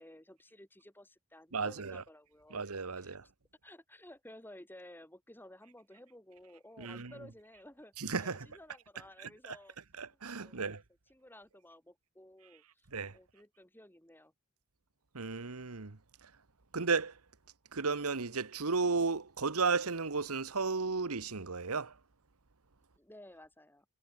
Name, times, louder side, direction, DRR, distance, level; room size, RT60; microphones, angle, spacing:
voice 1, 0.0-2.6 3.0-3.2 3.6-9.8 10.1-10.7 11.1-14.3 23.0-23.9, left 1 dB, 10° left, 7.7 m, -55 dB
voice 2, 1.5-2.0 2.5-3.2 6.8-7.1 8.0-8.5 9.2-9.6 10.0-10.8 12.9-13.2 15.1-16.3 16.7-17.2 17.7-22.0, right 4 dB, 85° right, 1.3 m, -34 dB
head